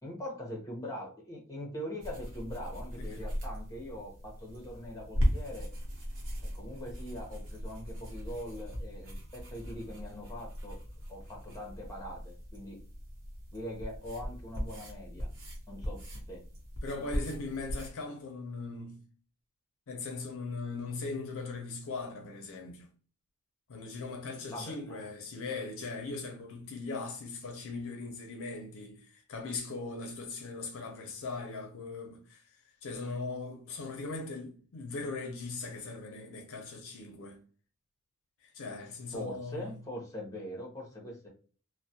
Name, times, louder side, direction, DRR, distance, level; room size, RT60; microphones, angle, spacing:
voice 1, 0.0-5.7 6.4-10.8 11.1-12.8 13.5-15.3 15.7-16.0 16.3-16.4 24.5-25.1 39.1-41.3, equal, 15° left, 0.8 m, -42 dB
sound 1, 2.0-17.9, equal, 60° right, 0.9 m, -38 dB
voice 2, 16.8-19.0 19.9-22.9 23.7-32.4 32.8-37.4 38.5-39.7, left 3 dB, 65° left, 0.5 m, -39 dB
2.3 x 2.1 x 2.7 m
head